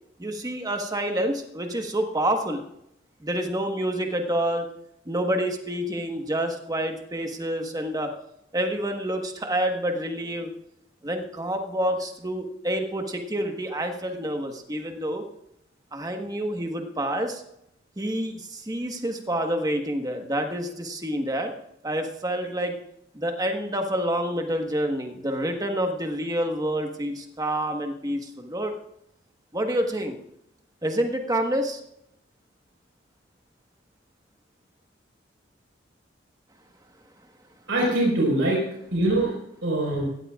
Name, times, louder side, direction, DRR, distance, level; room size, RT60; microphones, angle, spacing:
voice 1, 0.2-2.6 3.2-4.7 5.0-8.1 8.5-10.5 11.0-15.2 15.9-17.4 18.0-21.5 21.8-22.8 23.1-28.7 29.5-30.2 30.8-31.8, right 1 dB, 20° right, 4 dB, 1.4 m, -28 dB
voice 2, 37.7-38.6 38.9-40.0, right 1 dB, 85° right, -3 dB, 4.8 m, -23 dB
18.0 x 14.0 x 2.5 m, 0.78 s
head